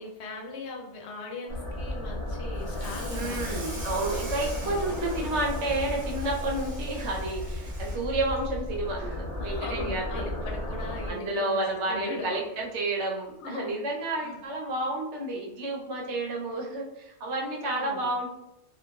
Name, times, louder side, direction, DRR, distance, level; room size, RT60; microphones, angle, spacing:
voice 1, 0.0-3.7 4.5-4.8 9.4-12.4 13.4-13.8 14.2-14.3 17.6-18.1, left 3 dB, 75° left, 1 dB, 0.9 m, -39 dB
sound 1, 1.5-11.1, left 1 dB, 45° left, 0.4 m, -34 dB
Water tap faucet / Sink (filling or washing), 2.6-9.2 9.6-9.9 10.2-10.3 10.7-10.8 11.9-12.0 12.5-12.7, right 1 dB, 45° right, 0.9 m, -45 dB
voice 2, 3.1-10.3 11.1-18.3, right 2 dB, 75° right, -1 dB, 1.0 m, -31 dB
3.0 x 2.3 x 2.3 m, 0.86 s
omnidirectional pair, 1.2 m